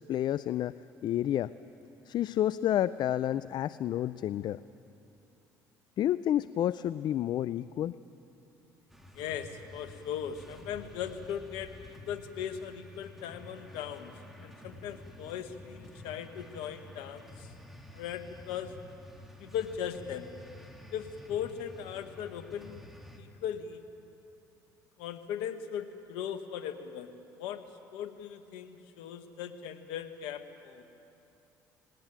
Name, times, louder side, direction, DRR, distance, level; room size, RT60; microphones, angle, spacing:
voice 1, 0.1-0.7 1.0-1.5 2.1-4.6 6.0-7.9, left 11 dB, 55° left, 16 dB, 0.4 m, -30 dB
sound 1, 8.9-23.2, left 1 dB, ahead, 3.3 m, -50 dB
voice 2, 9.1-17.5 17.9-18.7 19.4-20.3 20.9-22.8 23.2-23.8 25.0-27.1 27.4-27.6 27.9-30.8, left 9 dB, 80° left, 9 dB, 1.4 m, -38 dB
19.5 x 18.5 x 9.1 m, 2.8 s
hypercardioid pair, 65°, 9 cm